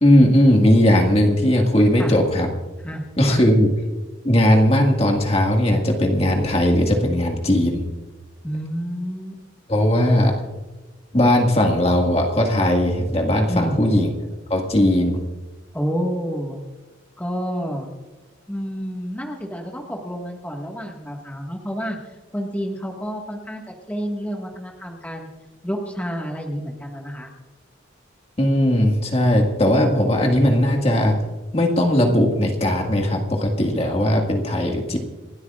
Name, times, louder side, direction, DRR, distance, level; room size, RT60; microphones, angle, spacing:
voice 1, 0.0-2.5 3.2-3.7 4.2-7.8 9.7-10.3 11.1-14.1 14.5-15.2 28.4-31.2 31.5-35.0, left 1 dB, 30° left, 1 dB, 1.9 m, -18 dB
voice 2, 2.8-3.4 8.4-9.4 13.5-13.8 15.7-16.6 17.2-17.9 18.5-22.0 22.3-23.6 23.9-25.3 25.6-27.3, equal, 10° left, 0 dB, 1.7 m, -29 dB
28.5 x 13.0 x 2.5 m, 1.2 s
head